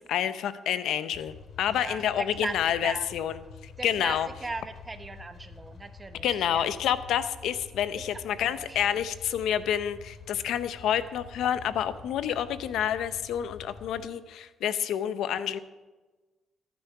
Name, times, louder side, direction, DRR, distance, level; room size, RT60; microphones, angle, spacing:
voice 1, 0.0-4.3 6.2-15.6, left 10 dB, 80° left, 13 dB, 0.7 m, -29 dB
sound 1, 1.1-14.1, left 5 dB, 55° left, 2.5 m, -48 dB
voice 2, 1.7-3.1 3.8-4.2 4.4-6.7 8.3-9.0, right 3 dB, 20° right, 8 dB, 1.2 m, -38 dB
14.5 x 10.5 x 4.7 m, 1.2 s
cardioid pair, 90°, 0 cm